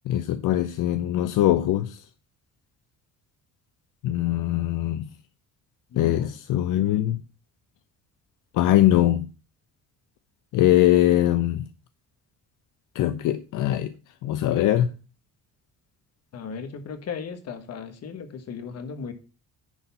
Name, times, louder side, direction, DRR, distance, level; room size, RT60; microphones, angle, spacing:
voice 1, 0.1-2.0 4.0-5.1 6.0-7.2 8.5-9.3 10.5-11.7 12.9-13.9 14.2-14.9, left 13 dB, 75° left, 0.6 m, -22 dB
voice 2, 5.9-6.3 16.3-19.1, left 6 dB, 50° left, 1.4 m, -36 dB
10.0 x 4.2 x 5.6 m
cardioid pair, 140°, 32 cm